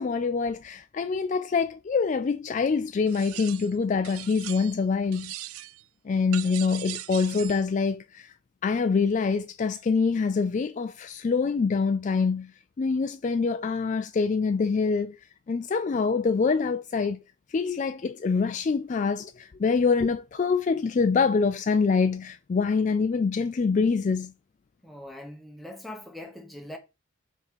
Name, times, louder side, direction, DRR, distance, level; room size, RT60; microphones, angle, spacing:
voice 1, 0.0-5.3 6.0-8.3 8.6-12.5 12.8-15.2 15.5-17.2 17.5-24.3, left 5 dB, 35° left, 0.3 m, -25 dB
sound 1, 3.1-3.8 4.0-4.8 5.1-5.8 6.3-7.7, right 15 dB, 85° right, 0.4 m, -39 dB
voice 2, 24.8-26.8, left 1 dB, ahead, 0.9 m, -41 dB
5.2 x 3.7 x 5.8 m
head